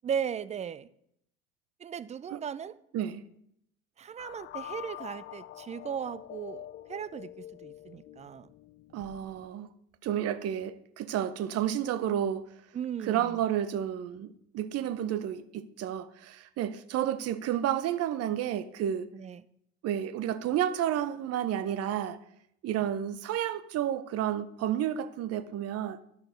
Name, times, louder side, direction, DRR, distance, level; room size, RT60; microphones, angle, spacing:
voice 1, 0.0-0.9 1.8-2.8 4.0-8.5 12.7-13.4 19.1-19.4, right 8 dB, 20° right, 0.4 m, -37 dB
sound 1, 4.2-9.4, left 12 dB, 40° left, 0.5 m, -45 dB
voice 2, 8.9-9.7 10.0-12.4 13.1-19.1 19.8-22.2 22.6-26.0, right 10 dB, 50° right, 0.8 m, -31 dB
11.0 x 5.9 x 5.1 m
hypercardioid pair, 80°, 31 cm